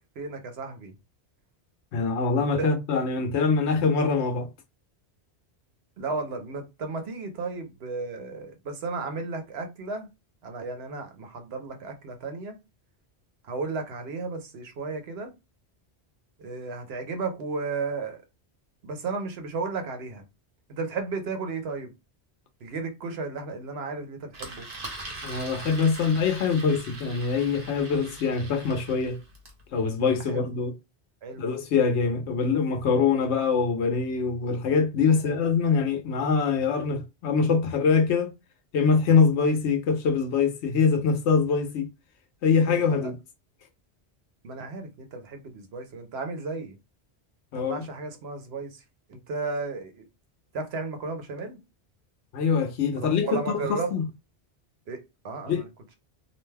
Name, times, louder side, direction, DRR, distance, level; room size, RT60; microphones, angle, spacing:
voice 1, 0.2-1.0 2.4-2.7 6.0-10.1 10.4-12.6 13.4-15.3 16.4-18.2 18.8-20.2 20.7-21.9 22.6-24.7 30.3-30.5 31.2-31.5 35.1-35.4 42.6-43.1 44.4-46.8 47.5-48.8 49.1-50.0 50.5-51.6 53.0-54.0 54.9-55.7, right 4 dB, 75° right, 0.9 m, -34 dB
voice 2, 1.9-4.5 25.2-29.2 29.7-30.7 31.4-38.3 38.7-41.9 42.4-43.1 47.5-47.8 52.3-54.0 55.5-55.6, left 5 dB, 90° left, 1.0 m, -24 dB
Engine, 24.3-29.6, right 2 dB, 40° right, 0.8 m, -41 dB
2.6 x 2.2 x 3.2 m
omnidirectional pair, 1.1 m